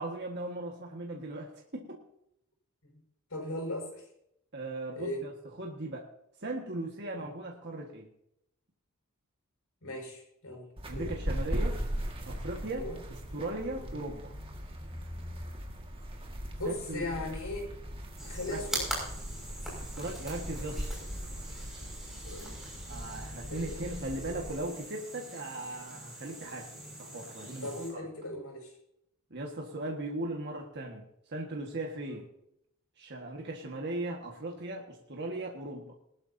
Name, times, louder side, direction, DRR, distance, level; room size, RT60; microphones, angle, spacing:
voice 1, 0.0-2.0 4.5-5.3 5.6-6.1 6.4-8.1 10.9-11.8 12.3-12.9 13.3-14.3 16.6-17.0 18.5-18.7 19.8-20.8 22.9-27.7 29.3-31.0 31.3-32.2 33.0-35.9, right 2 dB, 50° right, 0 dB, 1.7 m, -38 dB
voice 2, 3.3-4.0 4.9-5.3 7.2-7.3 9.8-11.1 12.7-13.0 13.7-13.9 16.6-17.7 18.2-18.9 22.0-22.6 23.5-23.9 27.6-28.7 32.1-32.2, left 1 dB, 75° left, 1 dB, 6.0 m, -38 dB
sound 1, 10.8-24.6, equal, 25° right, 1.9 m, -39 dB
sound 2, 18.2-27.9, right 1 dB, ahead, 6.0 m, -42 dB
19.5 x 12.5 x 2.8 m, 0.78 s
head